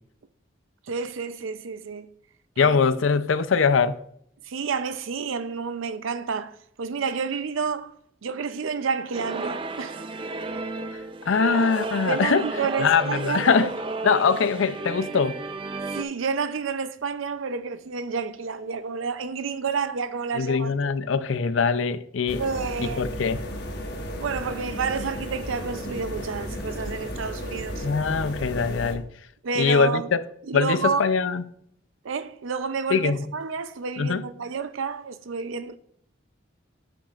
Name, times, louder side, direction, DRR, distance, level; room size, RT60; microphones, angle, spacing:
voice 1, 0.9-2.1 2.6-2.8 4.4-7.9 8.2-10.0 12.1-13.7 15.9-20.8 22.4-23.1 24.1-27.9 29.4-30.1 30.4-31.1 32.0-35.8, right 5 dB, 85° right, 0.5 m, -30 dB
voice 2, 2.6-4.0 11.3-12.5 12.8-13.7 14.0-15.4 20.3-22.4 22.8-23.4 27.8-29.0 29.6-30.2 30.5-31.4 32.9-33.2 34.0-34.2, left 5 dB, 80° left, 0.5 m, -22 dB
sound 1, 9.1-16.0, right 3 dB, 25° right, 0.3 m, -33 dB
sound 2, 22.3-28.9, equal, 55° left, 1.1 m, -34 dB
8.7 x 7.6 x 2.5 m
head